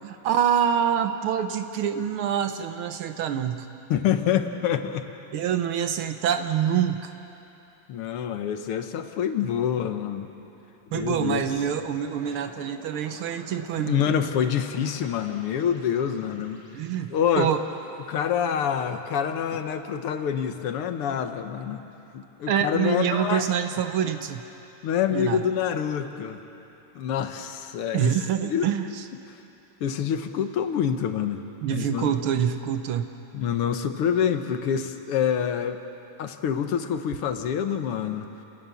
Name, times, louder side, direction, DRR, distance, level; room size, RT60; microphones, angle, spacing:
voice 1, 0.0-3.7 5.3-7.1 10.9-14.1 16.7-17.7 22.5-24.4 25.1-25.4 27.9-29.1 31.6-33.1, right 9 dB, 75° right, 8 dB, 1.6 m, -26 dB
voice 2, 3.9-5.1 7.9-10.3 10.9-11.4 13.8-16.6 17.1-17.5 18.1-21.8 22.1-23.5 24.8-26.4 27.0-28.2 28.4-28.7 29.8-31.4 31.7-32.1 33.3-35.8 36.2-38.3, left 8 dB, 85° left, 7 dB, 2.1 m, -26 dB
sound 1, 10.9-19.2, left 1 dB, 30° left, 5.9 m, -49 dB
29.5 x 18.0 x 7.1 m, 3.0 s
omnidirectional pair, 2.4 m